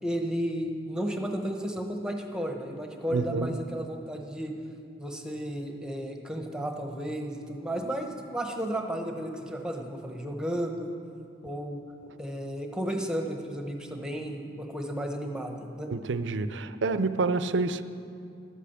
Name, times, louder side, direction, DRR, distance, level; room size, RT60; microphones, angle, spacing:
voice 1, 0.0-4.5 5.0-10.9 11.4-11.8 12.2-15.9, equal, 5° right, 3 dB, 1.0 m, -33 dB
voice 2, 3.1-3.6 15.9-17.8, right 3 dB, 75° right, 12 dB, 0.5 m, -28 dB
13.0 x 8.4 x 7.1 m, 2.5 s
head